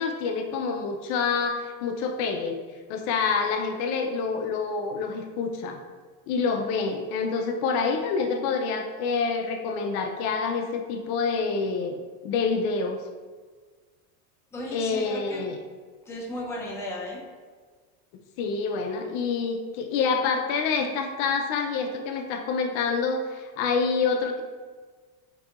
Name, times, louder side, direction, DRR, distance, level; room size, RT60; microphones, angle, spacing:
voice 1, 0.0-2.6 2.9-5.8 6.3-12.0 12.2-13.0 14.7-15.6 18.4-24.4, left 5 dB, 60° left, 4 dB, 0.6 m, -27 dB
voice 2, 14.5-15.4 16.1-17.2, left 1 dB, 5° left, -3 dB, 0.6 m, -35 dB
7.4 x 2.7 x 2.4 m, 1.5 s
supercardioid pair, 135°, 44 cm